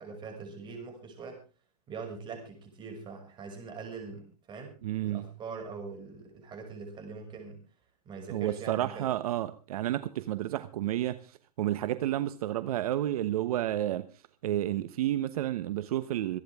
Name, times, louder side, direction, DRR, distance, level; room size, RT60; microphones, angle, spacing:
voice 1, 0.0-1.4 1.9-4.7 5.0-7.6 8.0-9.1, right 4 dB, 25° right, 6.1 m, -42 dB
voice 2, 4.8-5.3 8.3-14.1 14.4-16.4, right 13 dB, 65° right, 1.0 m, -31 dB
26.5 x 10.5 x 3.6 m
hypercardioid pair, 140°, 20 cm